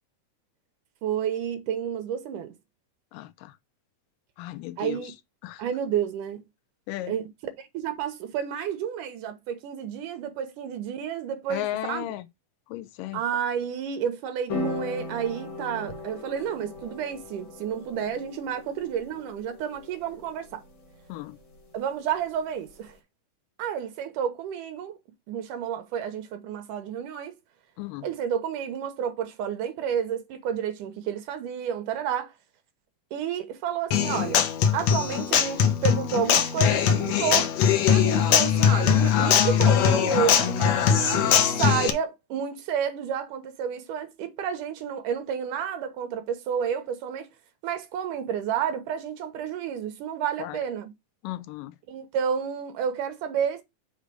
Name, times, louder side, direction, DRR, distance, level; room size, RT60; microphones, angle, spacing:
voice 1, 1.0-2.5 4.8-5.1 5.6-6.4 7.1-7.3 7.6-12.1 13.1-20.6 21.7-23.0 23.6-25.0 25.3-27.4 28.0-32.3 33.1-34.4 34.7-37.5 37.9-47.3 47.6-50.9 51.9-53.6, right 8 dB, 80° right, 2.5 m, -30 dB
voice 2, 3.1-3.5 4.4-5.1 5.4-5.6 6.9-7.1 11.5-12.3 12.7-13.2 21.1-21.4 27.8-28.1 50.4-50.6 51.2-51.8, left 15 dB, 85° left, 2.2 m, -35 dB
sound 1, 14.5-22.9, left 2 dB, 45° left, 2.0 m, -39 dB
Human voice / Acoustic guitar, 33.9-41.9, left 8 dB, 70° left, 1.7 m, -21 dB
6.5 x 3.3 x 4.9 m
omnidirectional pair, 3.8 m